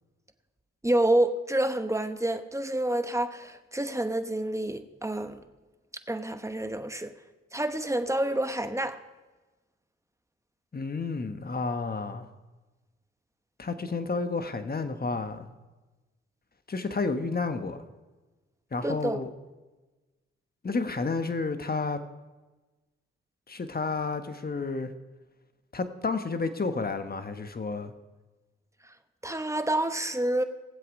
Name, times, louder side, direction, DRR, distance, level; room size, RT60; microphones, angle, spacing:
voice 1, 0.8-5.4 6.1-7.1 7.5-9.0 18.8-19.2 29.2-30.4, right 1 dB, 10° right, 9 dB, 1.1 m, -28 dB
voice 2, 10.7-12.3 13.6-15.5 16.7-17.8 18.7-19.3 20.6-22.0 23.5-24.9 25.7-27.9, left 4 dB, 30° left, 8 dB, 1.3 m, -31 dB
18.0 x 7.8 x 4.9 m, 1.2 s
supercardioid pair, 50°, 29 cm